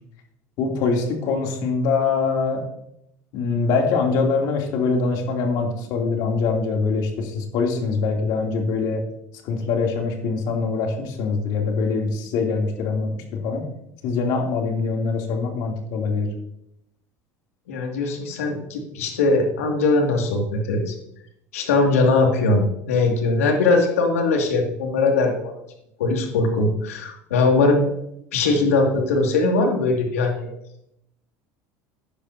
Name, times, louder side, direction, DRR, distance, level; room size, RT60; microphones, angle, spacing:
voice 1, 0.6-2.6 3.3-9.0 9.4-13.6 14.0-16.3, left 4 dB, 65° left, 1 dB, 2.8 m, -23 dB
voice 2, 17.7-21.0 21.5-25.5 26.0-27.9 28.3-30.5, left 3 dB, 85° left, 2 dB, 2.2 m, -20 dB
16.0 x 10.0 x 2.7 m, 0.79 s
hypercardioid pair, 85°, 8 cm